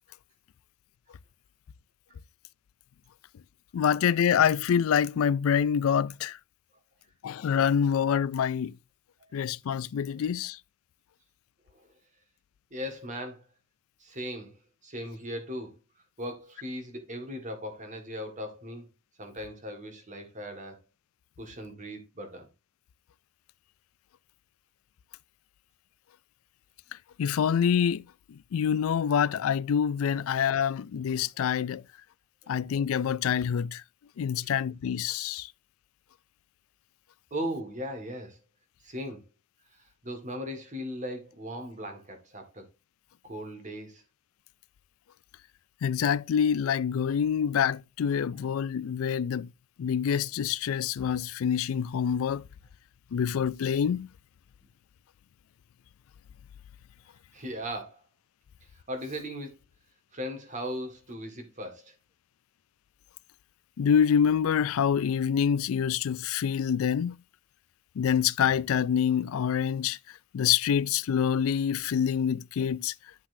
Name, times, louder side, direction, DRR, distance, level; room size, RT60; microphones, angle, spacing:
voice 1, 3.7-6.4 7.2-8.7 9.3-10.6 27.2-28.0 28.3-31.8 32.5-33.8 34.2-35.5 45.8-49.5 49.8-52.4 53.1-54.1 63.8-67.2 68.0-70.0 70.3-72.9, left 8 dB, 70° left, 0.3 m, -26 dB
voice 2, 12.7-13.5 14.0-15.8 16.2-18.9 19.2-20.8 21.4-22.5 32.4-32.5 34.4-34.5 37.3-38.4 38.8-39.2 39.7-42.6 43.2-44.0 57.3-58.0 58.7-59.5 60.1-61.9, equal, 35° right, 1.9 m, -38 dB
10.0 x 5.9 x 2.7 m
head